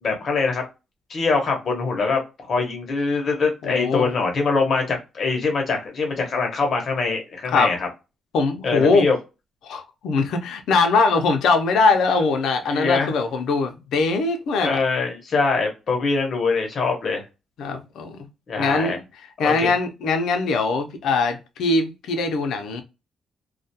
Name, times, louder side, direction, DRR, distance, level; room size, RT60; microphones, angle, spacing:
voice 1, 0.0-0.6 1.1-7.9 8.6-9.2 12.7-13.1 14.6-17.2 18.5-19.0 19.4-19.7, left 4 dB, 45° left, 0.8 m, -23 dB
voice 2, 3.6-4.1 7.5-7.7 8.3-9.1 9.6-14.8 17.6-18.3 18.6-19.0 19.4-22.8, left 3 dB, 80° left, 0.5 m, -21 dB
2.3 x 2.2 x 2.6 m
cardioid pair, 155°, 0 cm